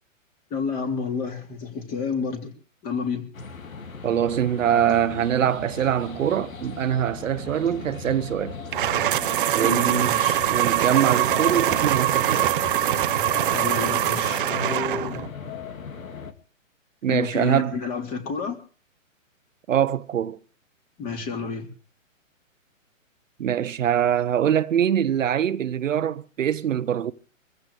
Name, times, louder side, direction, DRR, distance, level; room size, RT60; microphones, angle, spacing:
voice 1, 0.5-2.5 2.8-3.3 9.6-10.4 12.7-15.3 17.1-18.6 21.0-21.7, left 5 dB, 20° left, 3.5 m, -30 dB
sound 1, 3.3-16.3, left 5 dB, 90° left, 2.6 m, -37 dB
voice 2, 4.0-8.6 9.5-10.2 10.5-12.6 17.0-17.8 19.7-20.4 23.4-27.1, right 9 dB, 70° right, 1.0 m, -23 dB
sound 2, 8.7-15.3, right 12 dB, 40° right, 0.7 m, -23 dB
25.0 x 15.0 x 3.4 m
hypercardioid pair, 150°, 40 cm